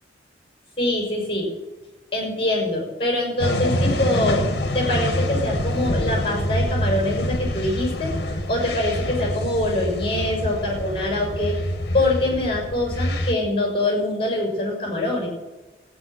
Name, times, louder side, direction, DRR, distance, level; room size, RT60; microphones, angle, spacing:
voice 1, 0.8-1.5 2.1-4.4 4.7-11.6 11.9-15.3, left 1 dB, 30° left, 0 dB, 6.2 m, -24 dB
sound 1, 3.4-13.3, left 1 dB, 60° left, 1.6 m, -26 dB
15.0 x 9.4 x 8.1 m, 1.2 s
head